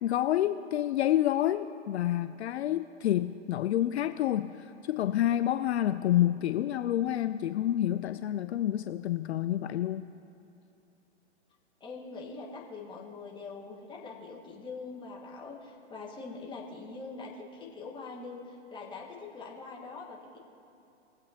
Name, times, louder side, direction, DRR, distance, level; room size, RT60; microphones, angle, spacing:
voice 1, 0.0-10.1, left 12 dB, 65° left, 11 dB, 0.5 m, -28 dB
voice 2, 11.8-20.4, left 4 dB, 15° left, -2 dB, 1.4 m, -43 dB
20.5 x 7.7 x 2.9 m, 2.7 s
hypercardioid pair, 135°, 36 cm